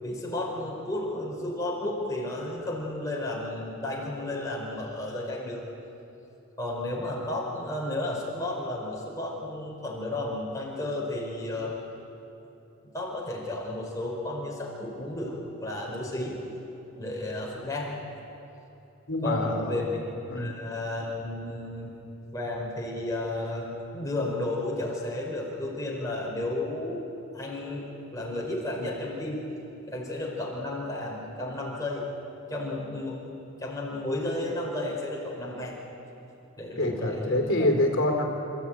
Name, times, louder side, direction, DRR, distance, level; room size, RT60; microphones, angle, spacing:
voice 1, 0.0-5.6 6.6-11.8 12.9-16.4 16.9-18.0 19.2-19.8 20.3-21.9 22.3-27.0 27.3-27.9 28.1-29.4 29.8-32.1 32.5-33.2 33.6-35.8 36.6-37.7, left 1 dB, 15° left, -3 dB, 4.9 m, -33 dB
voice 2, 19.1-19.9 20.3-20.5 36.8-38.2, left 1 dB, 55° left, 3 dB, 3.6 m, -26 dB
29.0 x 15.0 x 9.1 m, 3.0 s
head